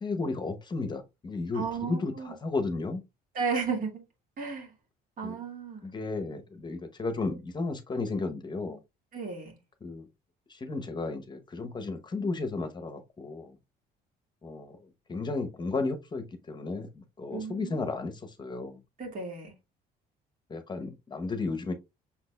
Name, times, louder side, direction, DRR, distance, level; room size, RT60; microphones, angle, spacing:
voice 1, 0.0-3.0 5.2-5.3 5.8-8.8 9.8-10.1 10.5-13.6 14.4-18.8 20.5-21.7, left 3 dB, 25° left, 0.8 m, -34 dB
voice 2, 1.5-2.3 3.3-4.0 4.4-4.7 5.2-5.9 9.1-9.6 17.3-17.8 19.0-19.5, right 5 dB, 55° right, 2.0 m, -34 dB
5.8 x 4.0 x 2.2 m
cardioid pair, 110°, 17 cm